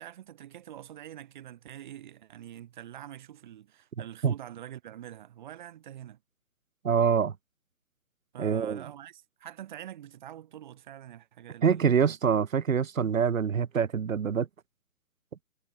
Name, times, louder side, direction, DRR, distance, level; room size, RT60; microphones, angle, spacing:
voice 1, 0.0-6.2 8.3-12.2, right 11 dB, 35° right, 4.3 m, -45 dB
voice 2, 6.8-7.3 8.4-8.8 11.6-14.5, right 7 dB, 65° right, 2.2 m, -25 dB
hypercardioid pair, 165°, 43 cm